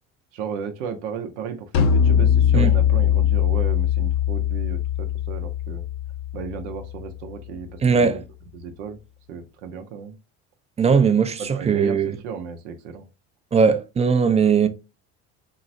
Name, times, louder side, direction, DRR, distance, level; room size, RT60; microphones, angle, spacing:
voice 1, 0.3-5.8 6.3-8.2 8.5-9.0 9.3-10.2 11.4-13.1, right 6 dB, 90° right, 0.6 m, -34 dB
sound 1, 1.7-7.2, left 9 dB, 55° left, 0.6 m, -21 dB
voice 2, 7.8-8.2 10.8-12.2 13.5-14.7, right 5 dB, 20° right, 0.4 m, -19 dB
3.7 x 2.0 x 2.5 m
supercardioid pair, 90°, 34 cm